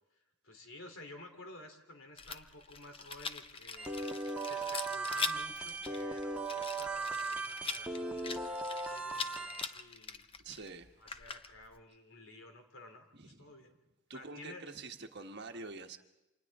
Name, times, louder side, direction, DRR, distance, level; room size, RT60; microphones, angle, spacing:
voice 1, 0.4-3.9 4.4-10.2 11.0-13.8 14.1-14.7, left 2 dB, 65° left, 4 dB, 3.4 m, -53 dB
Rattle, 2.2-11.8, left 5 dB, 25° left, 0.8 m, -43 dB
sound 1, 3.8-9.6, right 3 dB, 5° right, 1.5 m, -38 dB
voice 2, 10.4-10.9 13.1-13.5 14.1-16.0, right 3 dB, 50° right, 5 dB, 1.4 m, -46 dB
29.5 x 26.5 x 3.7 m, 1.0 s
head